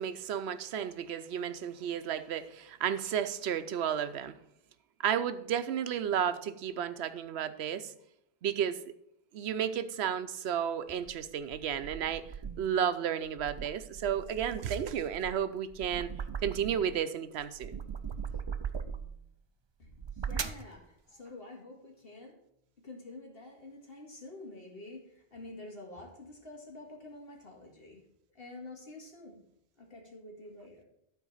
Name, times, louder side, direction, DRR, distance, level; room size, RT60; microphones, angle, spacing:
voice 1, 0.0-4.3 5.0-7.9 8.4-8.8 9.3-12.3 12.6-16.1 16.4-17.8, right 9 dB, 90° right, 0.9 m, -32 dB
sound 1, 10.9-12.8 13.2-17.0 17.4-19.2 19.9-20.7, right 6 dB, 40° right, 0.4 m, -40 dB
voice 2, 19.8-22.4 22.8-28.0 28.3-29.4 29.8-30.8, left 2 dB, 65° left, 2.3 m, -48 dB
12.0 x 4.5 x 5.5 m
omnidirectional pair, 1.1 m